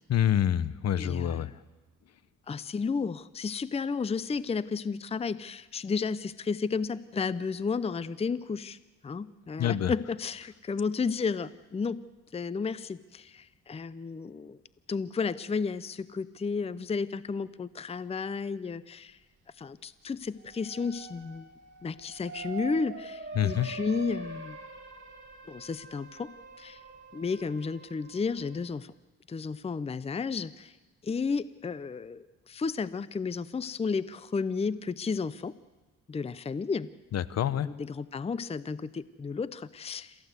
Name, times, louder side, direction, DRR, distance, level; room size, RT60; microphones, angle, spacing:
voice 1, 0.1-1.5 9.6-9.9 23.3-23.7 37.1-37.7, left 10 dB, 55° left, 17 dB, 0.8 m, -26 dB
voice 2, 1.0-1.5 2.5-8.8 9.0-12.0 12.3-14.6 14.9-19.2 19.6-21.5 21.8-24.6 25.5-26.3 26.6-26.8 27.1-28.9 29.3-30.7 31.0-35.5 36.1-36.9 37.5-40.2, left 5 dB, 20° left, 17 dB, 0.6 m, -32 dB
sound 1, 20.4-28.6, right 3 dB, 40° right, 4.5 m, -44 dB
27.5 x 14.5 x 8.1 m, 1.2 s
cardioid pair, 90°, 30 cm